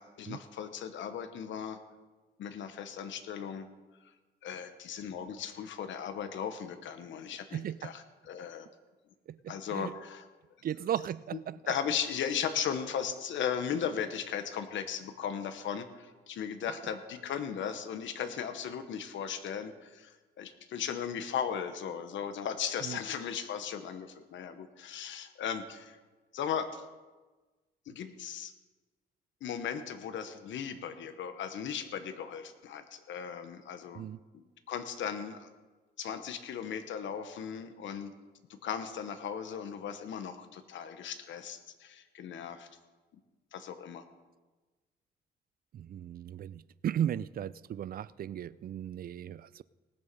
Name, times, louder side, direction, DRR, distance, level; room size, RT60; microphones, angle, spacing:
voice 1, 0.0-1.8 2.4-3.7 4.4-8.7 9.5-10.3 11.7-26.0 26.3-26.8 27.9-28.5 29.4-34.1 34.3-35.5 36.0-38.1 38.5-42.7 43.5-44.0, left 8 dB, 70° left, 1.2 m, -37 dB
voice 2, 7.5-7.9 9.3-9.9 10.6-11.7 22.8-23.0 33.9-34.2 45.7-49.6, right 10 dB, 50° right, 0.4 m, -36 dB
18.5 x 7.1 x 5.3 m
cardioid pair, 90°, 20 cm